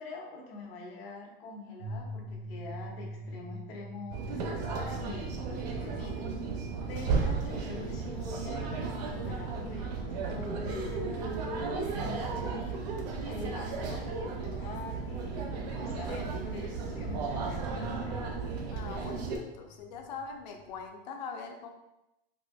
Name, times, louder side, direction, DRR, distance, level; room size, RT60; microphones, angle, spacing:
voice 1, 0.0-6.4 6.9-12.8 13.3-18.3, left 2 dB, 75° left, -1 dB, 1.0 m, -44 dB
sound 1, 1.8-11.1 12.1-12.2 17.0-20.9, equal, 85° right, 1.0 m, -46 dB
sound 2, 4.1-19.4, right 4 dB, 45° right, 0.5 m, -34 dB
voice 2, 13.3-14.0 18.7-21.7, left 5 dB, 50° left, 4 dB, 0.5 m, -43 dB
4.2 x 2.7 x 2.3 m, 0.91 s
supercardioid pair, 175°, 30 cm